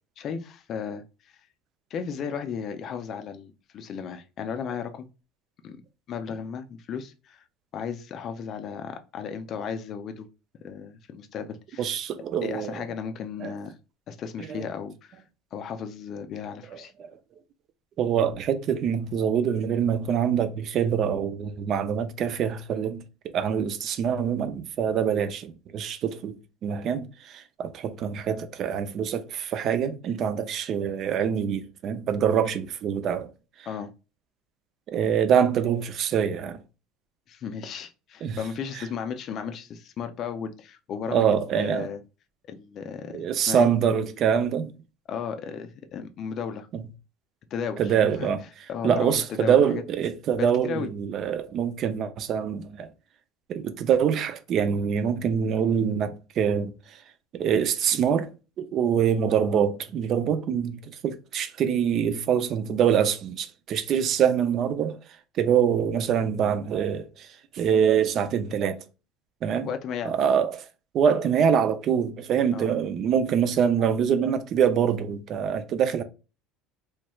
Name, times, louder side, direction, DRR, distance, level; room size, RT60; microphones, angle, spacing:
voice 1, 0.2-1.4 1.9-5.1 5.6-5.8 6.1-7.4 7.7-10.3 10.6-11.9 12.4-13.8 14.1-15.2 15.5-16.9 33.7-33.9 37.3-41.3 41.5-42.0 42.5-43.7 45.1-46.7 47.5-47.9 48.2-48.3 48.7-49.8 50.4-50.9 69.5-70.2 72.5-72.7, left 7 dB, 30° left, 0.4 m, -35 dB
voice 2, 11.8-12.8 13.4-13.5 14.5-14.6 17.0-17.1 18.0-23.0 23.3-33.3 33.6-33.7 34.9-36.6 38.2-38.4 38.7-38.8 41.1-41.9 43.1-44.7 46.7-46.8 47.8-48.4 48.8-52.9 53.5-57.0 57.3-65.0 65.4-67.3 67.5-68.8 69.4-69.7 70.0-70.6 70.9-76.0, right 8 dB, 35° right, 0.4 m, -25 dB
3.1 x 3.1 x 2.2 m
cardioid pair, 175°, 0 cm